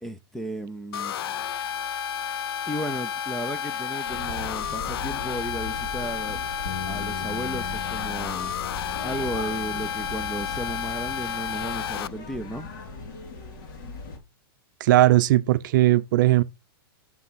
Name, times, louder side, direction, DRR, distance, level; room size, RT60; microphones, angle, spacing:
voice 1, 0.0-1.4 2.7-6.4 6.9-8.5 9.0-12.7, right 1 dB, ahead, 0.4 m, -34 dB
sound 1, 0.9-12.1, left 9 dB, 75° left, 0.5 m, -31 dB
sound 2, 4.1-14.2, left 3 dB, 55° left, 2.8 m, -38 dB
sound 3, 6.7-12.9, left 6 dB, 40° left, 2.1 m, -42 dB
voice 2, 14.8-16.4, right 15 dB, 55° right, 0.6 m, -18 dB
7.4 x 5.8 x 4.0 m
hypercardioid pair, 155°, 13 cm